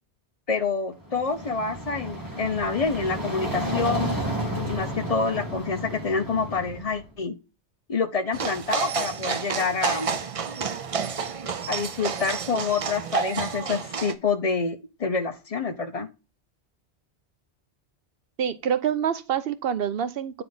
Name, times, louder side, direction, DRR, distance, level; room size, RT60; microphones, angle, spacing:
voice 1, 0.5-4.2 4.7-7.4 7.9-10.1 11.7-16.1, left 4 dB, 40° left, 0.5 m, -27 dB
sound 1, 1.0-7.0, equal, 15° right, 1.9 m, -32 dB
sound 2, 8.3-14.1, right 6 dB, 45° right, 0.5 m, -30 dB
voice 2, 18.4-20.4, right 8 dB, 65° right, 0.8 m, -26 dB
8.8 x 3.7 x 3.9 m
omnidirectional pair, 1.2 m